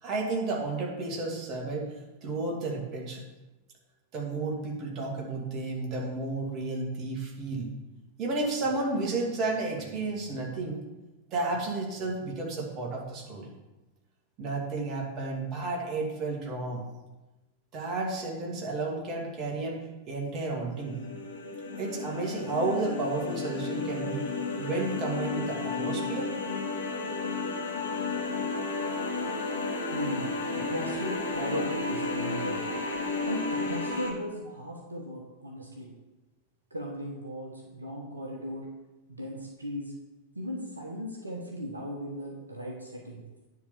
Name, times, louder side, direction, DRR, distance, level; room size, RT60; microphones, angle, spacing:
voice 1, 0.0-3.2 4.1-7.7 8.2-10.8 11.3-13.5 14.4-16.8 17.7-21.0 21.7-26.3, right 3 dB, 35° right, -1 dB, 2.5 m, -32 dB
sound 1, 20.7-34.1, left 3 dB, 70° left, 1.9 m, -32 dB
voice 2, 29.9-32.6 33.3-35.9 36.7-38.7 39.1-39.9 40.3-43.2, equal, 80° right, 0 dB, 1.3 m, -37 dB
10.0 x 4.1 x 7.0 m, 1.1 s
figure-of-eight pair, 90°, 0 cm